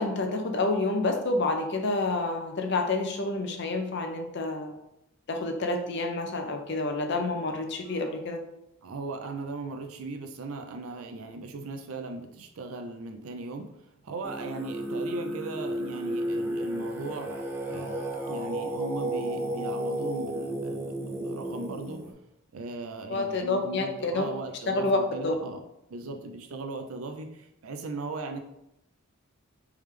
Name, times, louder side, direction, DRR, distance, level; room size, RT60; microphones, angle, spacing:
voice 1, 0.0-4.7 5.3-8.4 23.1-24.2 24.7-25.0 25.2-25.3, left 2 dB, 55° left, 5 dB, 0.6 m, -28 dB
voice 2, 8.8-17.4 17.7-22.0 22.5-25.6 25.9-28.4, right 3 dB, 85° right, 6 dB, 0.5 m, -38 dB
Singing, 14.2-22.1, right 1 dB, 10° right, 0.4 m, -33 dB
3.5 x 3.3 x 3.2 m, 0.84 s
head